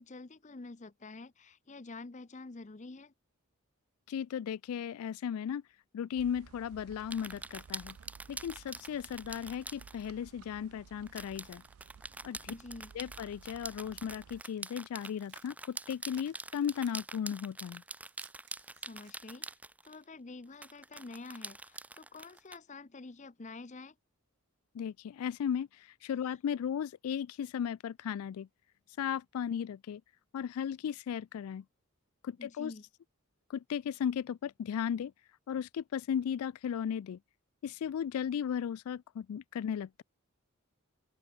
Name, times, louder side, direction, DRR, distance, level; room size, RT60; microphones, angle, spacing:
voice 1, 0.0-3.1 12.5-12.9 18.9-19.5 19.8-24.0 26.2-26.4 32.4-32.8, left 3 dB, 35° left, 0.6 m, -48 dB
voice 2, 4.1-5.6 5.9-8.0 8.3-11.6 12.2-12.5 12.9-17.8 24.7-28.5 29.0-30.0 30.3-31.6 32.2-32.7 33.5-35.1 35.5-37.2 37.6-40.0, left 8 dB, 80° left, 0.3 m, -36 dB
sound 1, 6.2-14.4, right 6 dB, 75° right, 0.4 m, -56 dB
sound 2, 7.1-10.1 11.1-20.0 20.6-22.6, right 2 dB, 5° right, 0.8 m, -45 dB
sound 3, 14.2-19.5, right 13 dB, 55° right, 2.2 m, -64 dB
open air
head